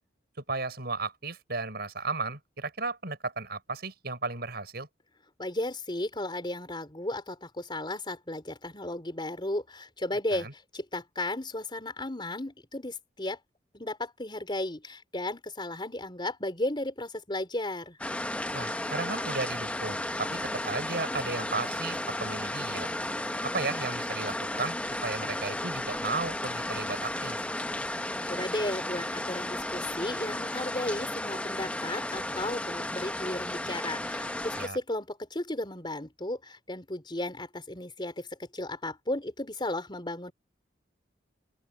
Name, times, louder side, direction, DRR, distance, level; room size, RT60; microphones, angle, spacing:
voice 1, 0.4-4.9 10.3-10.5 18.5-22.9 23.4-24.8 25.0-27.4 34.6-34.8, right 3 dB, 60° right, 6.5 m, -34 dB
voice 2, 5.4-13.4 13.7-18.0 28.2-40.3, left 1 dB, 25° left, 4.7 m, -34 dB
sound 1, 18.0-34.7, left 1 dB, 5° left, 0.9 m, -34 dB
open air
head